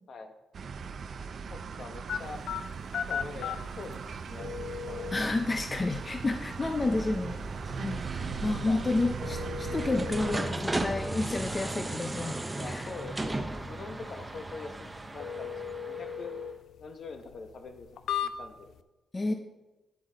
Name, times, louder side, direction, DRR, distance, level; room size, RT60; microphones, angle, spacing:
sound 1, 0.5-10.4, right 5 dB, 55° right, 0.5 m, -39 dB
voice 1, 1.5-2.4 3.1-4.5 4.9-5.1 6.8-6.9 8.5-8.8 9.9-10.1 12.5-15.5 15.8-16.4 16.8-17.9 18.2-18.7 19.3-19.4, left 4 dB, 55° left, 6 dB, 1.0 m, -44 dB
sound 2, 2.1-18.8, left 7 dB, 85° left, 0.4 m, -40 dB
voice 2, 5.1-7.5 7.8-12.4 12.6-12.9 19.1-19.3, left 2 dB, 25° left, 5 dB, 0.5 m, -30 dB
sound 3, 5.7-16.4, right 2 dB, 15° right, 0.7 m, -37 dB
9.6 x 7.8 x 3.9 m, 1.1 s
wide cardioid pair, 140°, 0 cm